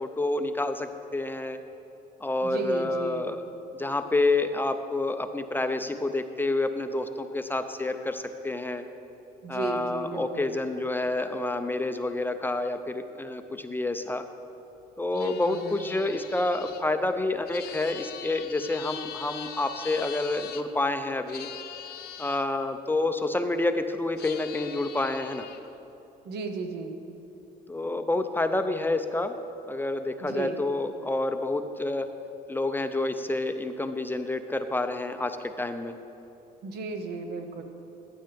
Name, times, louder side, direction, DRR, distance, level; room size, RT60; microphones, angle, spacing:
voice 1, 0.0-1.6 2.2-3.4 3.7-8.8 9.5-14.2 15.0-21.5 22.2-25.5 27.7-29.4 29.7-32.1 32.5-36.0, left 2 dB, 10° left, 8 dB, 0.4 m, -28 dB
voice 2, 2.4-3.3 9.4-10.6 15.1-16.0 26.2-26.9 30.2-30.6 36.6-37.6, right 4 dB, 75° right, 6 dB, 1.0 m, -35 dB
sound 1, 15.1-20.6 21.3-22.5 24.2-25.6, left 10 dB, 70° left, 0.7 m, -42 dB
15.0 x 9.2 x 3.4 m, 2.9 s
cardioid pair, 110°, 17 cm